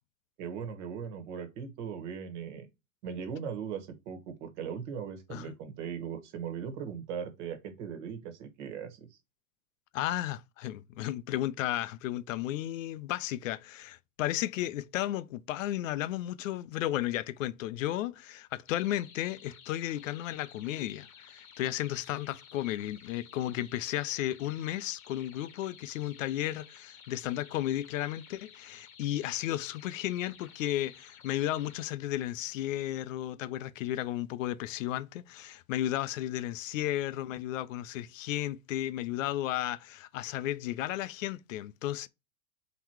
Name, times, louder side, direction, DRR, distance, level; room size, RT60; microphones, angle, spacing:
voice 1, 0.4-2.7 3.0-9.2, right 7 dB, 55° right, 1.5 m, -39 dB
voice 2, 9.9-42.1, left 13 dB, 65° left, 0.6 m, -34 dB
sound 1, 18.7-31.9, left 7 dB, 85° left, 1.2 m, -54 dB
3.9 x 3.0 x 4.5 m
hypercardioid pair, 130°, 42 cm